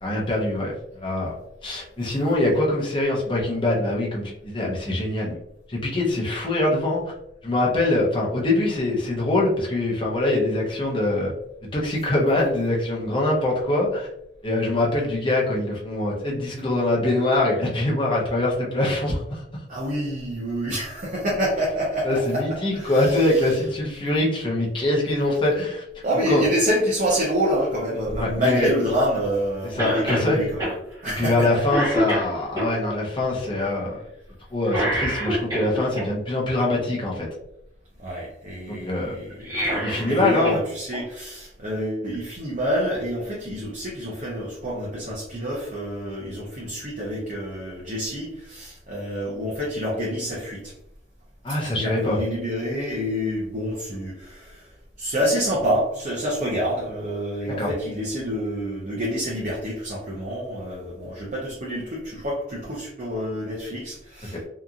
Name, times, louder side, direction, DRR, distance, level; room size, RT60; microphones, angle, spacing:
voice 1, 0.0-1.3 1.6-5.4 5.7-7.0 7.4-11.3 11.7-14.1 14.4-19.4 22.0-25.8 26.3-26.4 28.2-28.7 29.7-30.4 31.2-34.0 34.5-37.3 38.7-39.2 39.8-40.6 51.4-52.2 57.6-57.7 64.3-64.5, left 2 dB, 30° left, -3 dB, 0.7 m, -23 dB
voice 2, 19.7-23.6 26.0-30.7 31.0-31.6 38.0-50.7 51.6-64.5, equal, 45° right, -5 dB, 0.6 m, -27 dB
Cough, 29.8-30.3 30.6-30.8 31.2-31.4 31.7-32.7 34.7-36.0 39.3-40.6 40.9-41.0 42.1-42.2, equal, 20° right, 1.1 m, -26 dB
2.8 x 2.4 x 2.4 m, 0.81 s
head